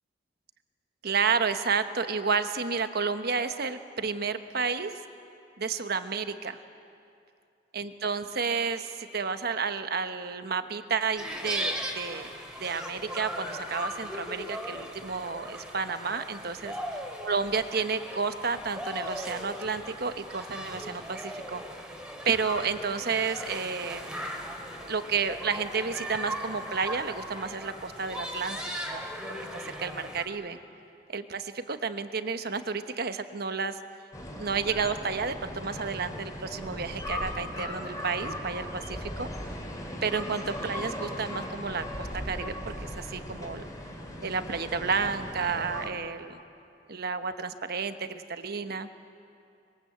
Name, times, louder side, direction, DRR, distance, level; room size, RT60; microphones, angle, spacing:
voice 1, 1.0-4.9 5.6-6.6 7.7-12.3 12.6-16.7 17.2-21.6 22.2-24.1 24.9-28.6 28.9-29.0 29.3-30.6 31.1-33.8 34.4-39.3 40.0-42.5 42.8-43.7 44.2-46.4 46.9-48.9, right 5 dB, 55° right, 9 dB, 1.1 m, -31 dB
sound 1, 11.2-30.2, equal, 5° right, 2.8 m, -38 dB
sound 2, 34.1-45.9, left 1 dB, 20° left, 3.5 m, -38 dB
26.0 x 21.5 x 8.0 m, 2.5 s
head